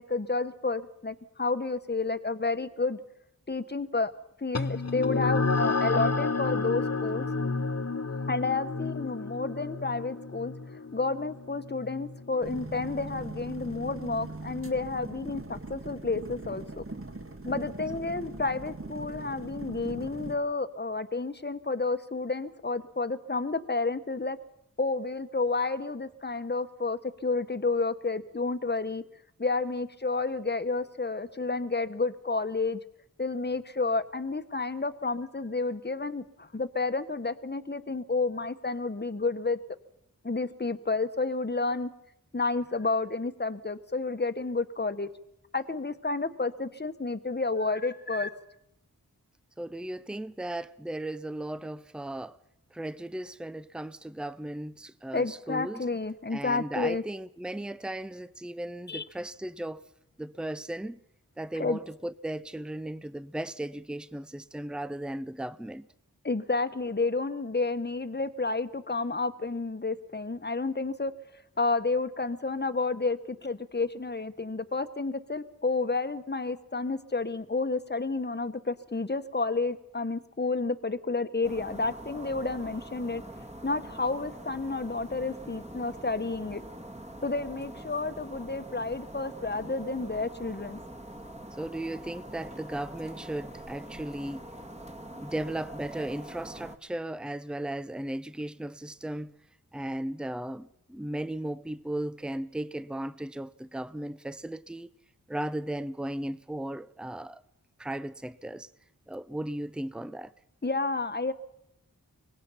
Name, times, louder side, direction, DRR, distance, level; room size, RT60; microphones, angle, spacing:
voice 1, 0.0-3.0 3.5-4.1 4.4-7.3 8.3-10.5 10.9-16.8 17.4-24.4 24.8-29.0 29.4-32.8 33.2-39.6 40.2-41.9 42.3-45.1 45.5-48.3 55.1-57.0 58.9-59.0 61.6-61.8 66.2-71.1 71.6-83.2 83.6-86.6 87.2-90.8 110.6-111.3, left 3 dB, 30° left, 1.3 m, -30 dB
sound 1, 4.5-13.4, left 3 dB, 45° left, 1.1 m, -31 dB
sound 2, 12.4-20.4, right 2 dB, 40° right, 2.0 m, -40 dB
voice 2, 49.6-52.4 52.7-55.8 56.3-59.8 60.2-61.0 61.4-65.9 91.6-94.5 95.2-99.3 99.7-104.9 105.3-107.4 107.8-108.7 109.1-110.3, right 1 dB, 5° right, 0.7 m, -36 dB
sound 3, 81.4-96.8, right 1 dB, 20° right, 2.2 m, -44 dB
24.5 x 19.5 x 5.8 m
wide cardioid pair, 45°, 35 cm